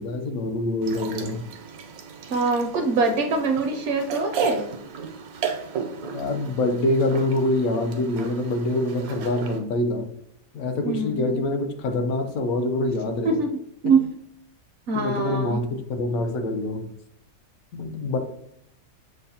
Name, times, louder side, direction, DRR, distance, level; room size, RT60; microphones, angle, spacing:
voice 1, 0.0-1.4 6.1-10.1 10.5-13.4 13.8-13.9 14.9-16.9 17.7-18.2, left 2 dB, 75° left, 6 dB, 1.0 m, -25 dB
sound 1, 0.8-9.6, right 6 dB, 85° right, 1.1 m, -35 dB
voice 2, 2.3-4.6 10.8-11.5 13.2-13.5 13.8-14.1 14.9-15.6, right 4 dB, 65° right, 5 dB, 0.8 m, -23 dB
6.1 x 2.1 x 2.7 m, 0.71 s
omnidirectional pair, 1.5 m